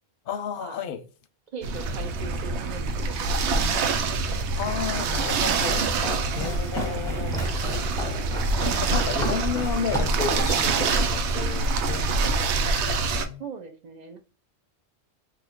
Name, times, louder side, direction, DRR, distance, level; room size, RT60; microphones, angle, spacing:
voice 1, 0.3-1.0 4.5-5.9 6.3-8.0 8.6-13.4, left 7 dB, 60° left, 0.7 m, -33 dB
voice 2, 1.5-4.1 4.9-5.7 6.3-6.8 13.4-14.2, right 5 dB, 50° right, 0.5 m, -41 dB
sound 1, 1.6-13.2, right 3 dB, 90° right, 0.9 m, -25 dB
Walk footsteps, 4.7-11.1, left 1 dB, 5° left, 0.6 m, -35 dB
2.6 x 2.4 x 4.1 m
omnidirectional pair, 1.1 m